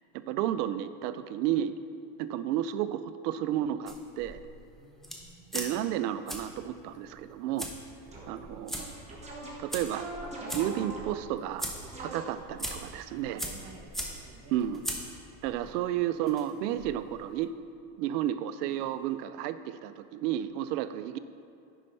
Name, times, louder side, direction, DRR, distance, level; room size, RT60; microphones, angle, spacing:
voice 1, 0.3-1.7 2.2-4.4 5.5-7.7 8.3-9.0 9.6-10.1 10.5-11.7 12.0-13.4 14.5-14.8 15.4-17.5 18.0-21.2, right 11 dB, 85° right, 13 dB, 0.5 m, -32 dB
sound 1, 3.9-17.4, equal, ahead, 0.7 m, -42 dB
voice 2, 4.8-6.1 13.2-15.0 18.7-19.0, right 4 dB, 30° right, 3 dB, 0.8 m, -53 dB
sound 2, 8.1-8.4 8.7-11.3 11.8-12.6, right 2 dB, 15° right, 1.4 m, -41 dB
9.7 x 5.4 x 3.3 m, 2.5 s
supercardioid pair, 115°, 46 cm